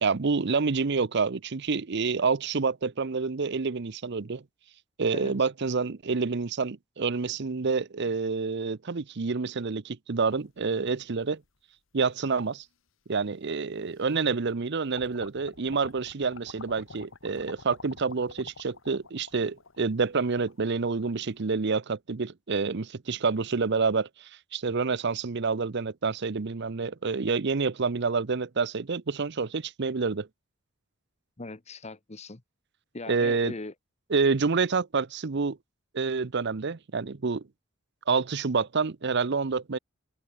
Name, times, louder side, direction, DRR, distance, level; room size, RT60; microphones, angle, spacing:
voice 1, 0.0-4.4 5.0-11.4 11.9-12.6 13.1-30.3 33.1-33.5 34.1-35.6 35.9-37.4 38.1-39.8, right 4 dB, 55° right, 0.7 m, -28 dB
sound 1, 10.3-11.5 12.2-12.3 13.5-13.6 14.0-14.6 14.9-21.4, left 4 dB, 65° left, 1.6 m, -48 dB
voice 2, 31.4-32.4 32.9-33.7, left 2 dB, 30° left, 1.1 m, -40 dB
open air
head